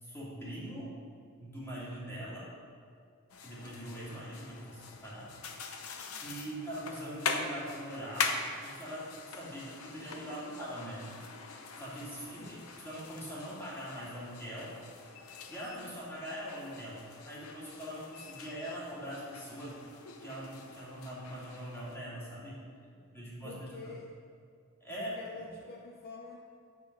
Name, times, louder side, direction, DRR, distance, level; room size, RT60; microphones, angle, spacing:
voice 1, 0.0-0.9 1.4-2.4 3.4-5.3 6.1-11.1 11.8-14.7 15.5-19.8 20.2-22.6 23.1-23.7 24.8-25.2, equal, 10° left, -7 dB, 2.3 m, -42 dB
sound 1, 3.3-22.0, left 5 dB, 80° left, 0.7 m, -42 dB
voice 2, 9.4-9.7 12.4-12.7 22.9-23.2 23.4-24.1 24.9-26.4, left 3 dB, 45° left, 0 dB, 0.6 m, -48 dB
7.3 x 6.7 x 5.3 m, 2.3 s
head